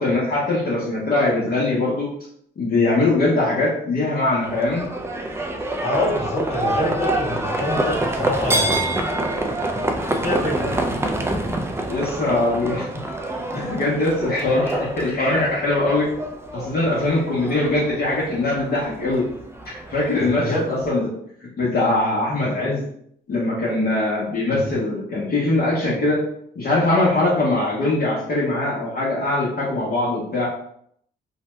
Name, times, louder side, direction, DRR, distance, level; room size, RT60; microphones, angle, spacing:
voice 1, 0.0-2.1 2.6-4.9 11.9-12.9 13.5-16.1 16.5-19.2 19.6-21.1 21.6-22.8 23.3-26.2 26.5-30.5, left 2 dB, 50° left, -7 dB, 1.0 m, -21 dB
Livestock farm animals working animals, 4.4-20.9, right 1 dB, 15° right, 0.4 m, -27 dB
voice 2, 5.8-9.0 10.2-10.7 13.5-13.7 20.1-20.7 24.5-24.7, left 1 dB, 30° left, -5 dB, 1.3 m, -26 dB
2.7 x 2.2 x 3.1 m, 0.67 s
cardioid pair, 90°, 20 cm